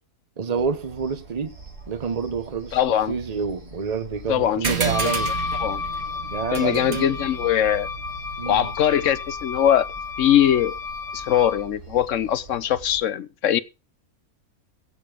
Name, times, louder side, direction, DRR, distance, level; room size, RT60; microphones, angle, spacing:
voice 1, 0.4-1.5 1.9-5.3 6.3-7.1 8.4-8.7, right 5 dB, 30° right, 1.0 m, -28 dB
sound 1, 0.5-13.0, right 1 dB, 90° right, 3.8 m, -43 dB
voice 2, 2.7-3.1 4.3-4.7 5.6-5.8 6.5-7.9 8.5-9.8 10.2-10.7 11.1-13.6, left 10 dB, 60° left, 1.0 m, -21 dB
sound 2, 4.6-9.6, right 5 dB, 65° right, 2.1 m, -32 dB
Wind instrument woodwind instrument, 4.9-11.7, left 4 dB, 40° left, 2.0 m, -32 dB
16.0 x 7.0 x 5.1 m
omnidirectional pair, 1.6 m